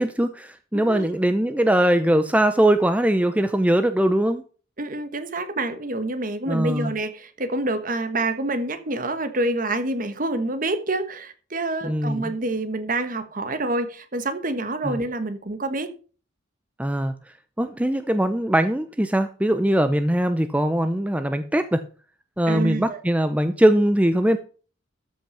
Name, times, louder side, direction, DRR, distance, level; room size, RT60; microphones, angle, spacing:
voice 1, 0.0-4.4 6.5-6.9 11.8-12.3 14.8-15.0 16.8-17.1 17.6-21.8 22.4-24.4, right 1 dB, 5° right, 10 dB, 0.5 m, -21 dB
voice 2, 0.7-1.1 4.8-15.9 22.5-23.0, right 2 dB, 45° right, 10 dB, 1.4 m, -27 dB
13.0 x 5.9 x 5.7 m, 0.38 s
head